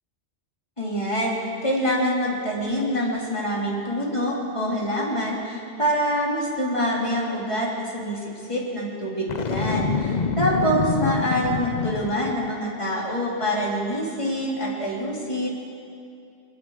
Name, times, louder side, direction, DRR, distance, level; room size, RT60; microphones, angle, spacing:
voice 1, 0.8-8.2 8.5-15.5, equal, 25° left, -4 dB, 4.2 m, -25 dB
Boom, 9.3-12.5, left 5 dB, 40° left, 0.7 m, -26 dB
26.0 x 20.5 x 5.2 m, 2.4 s
omnidirectional pair, 1.3 m